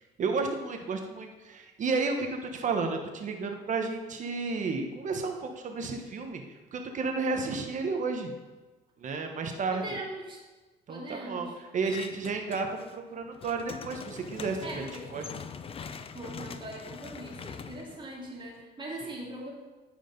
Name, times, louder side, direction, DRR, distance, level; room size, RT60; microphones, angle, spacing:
voice 1, 0.0-6.4 6.7-8.3 9.0-9.8 10.9-14.8 15.1-15.3, right 4 dB, 45° right, 4 dB, 1.3 m, -32 dB
voice 2, 9.7-10.4 10.9-11.6 14.6-15.1 15.8-19.5, right 1 dB, 30° right, -2 dB, 2.6 m, -41 dB
sound 1, 11.8-12.9 13.2-18.6, left 6 dB, 35° left, 0.6 m, -43 dB
13.0 x 5.1 x 5.3 m, 1.2 s
cardioid pair, 110°, 17 cm